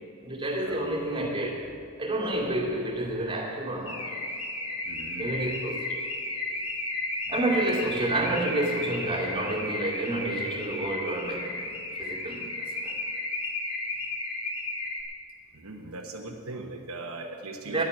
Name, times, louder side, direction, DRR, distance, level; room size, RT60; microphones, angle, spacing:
voice 1, 0.2-1.7 2.0-4.1 5.2-6.0 7.3-13.0 17.6-17.8, right 1 dB, 20° right, -3 dB, 2.4 m, -29 dB
Car / Alarm, 3.9-15.0, left 2 dB, 30° left, 1.7 m, -33 dB
voice 2, 4.9-5.4 7.3-7.6 15.5-17.8, right 2 dB, 75° right, 1 dB, 1.1 m, -39 dB
10.5 x 8.9 x 9.2 m, 2.3 s
head